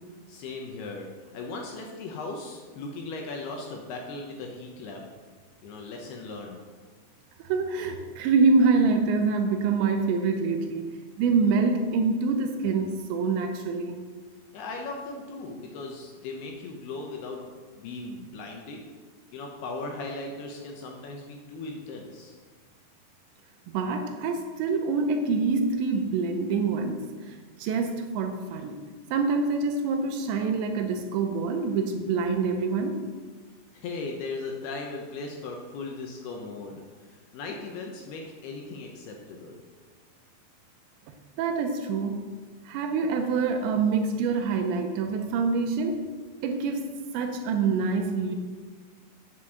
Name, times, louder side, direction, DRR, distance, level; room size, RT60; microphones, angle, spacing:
voice 1, 0.3-5.1 5.6-6.6 14.5-18.9 19.3-22.4 33.7-39.6, left 3 dB, 70° left, 1 dB, 2.7 m, -38 dB
voice 2, 7.4-14.0 23.7-28.8 29.1-33.0 41.4-42.2 42.7-46.1 46.4-48.4, right 4 dB, 80° right, 5 dB, 3.0 m, -26 dB
9.2 x 7.9 x 6.4 m, 1.5 s
omnidirectional pair, 5.2 m